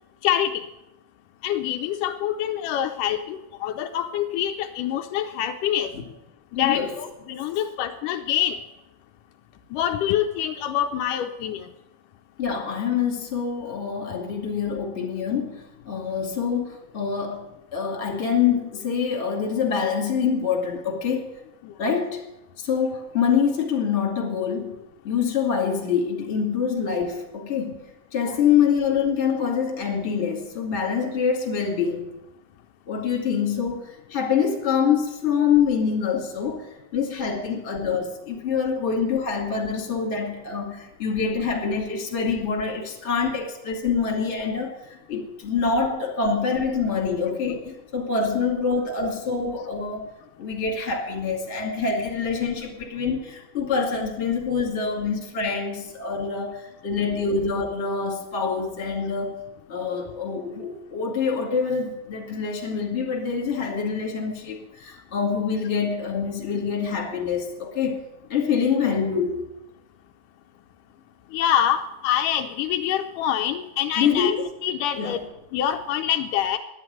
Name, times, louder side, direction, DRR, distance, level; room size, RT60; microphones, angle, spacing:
voice 1, 0.2-0.7 1.4-5.9 6.5-8.6 9.7-11.7 21.6-21.7 71.3-74.4 74.6-76.6, left 10 dB, 80° left, 7 dB, 2.2 m, -25 dB
voice 2, 6.5-6.9 12.4-21.3 21.8-22.3 22.6-24.8 25.0-27.7 28.1-32.1 32.9-50.1 50.4-59.4 59.7-68.0 68.3-69.4 74.0-74.5 75.0-75.2, left 6 dB, 25° left, 2 dB, 1.9 m, -25 dB
10.5 x 9.1 x 9.2 m, 0.91 s
omnidirectional pair, 3.8 m